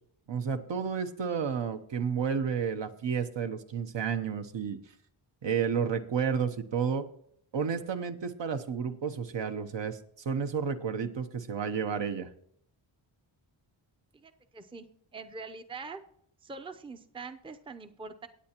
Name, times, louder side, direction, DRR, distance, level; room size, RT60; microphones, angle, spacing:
voice 1, 0.3-4.8 5.4-7.1 7.5-10.0 10.2-12.3, right 6 dB, 60° right, 8 dB, 0.9 m, -31 dB
voice 2, 14.1-14.9 15.1-16.0 16.4-18.3, right 4 dB, 10° right, 8 dB, 0.6 m, -43 dB
17.0 x 8.8 x 2.9 m, 0.68 s
wide cardioid pair, 90°, 48 cm